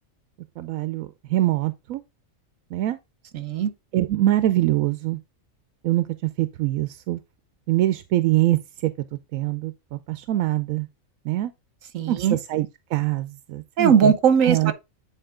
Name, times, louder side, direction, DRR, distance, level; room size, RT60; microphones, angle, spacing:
voice 1, 0.6-2.0 2.7-3.0 3.9-5.2 5.8-6.0 6.4-7.2 7.7-8.9 9.3-9.7 10.1-10.9 11.2-11.5 12.1-14.1 14.5-14.7, right 15 dB, 90° right, 1.0 m, -23 dB
voice 2, 3.3-3.7 11.9-12.4 13.8-14.7, right 7 dB, 70° right, 1.4 m, -19 dB
9.2 x 4.3 x 3.6 m
omnidirectional pair, 1.4 m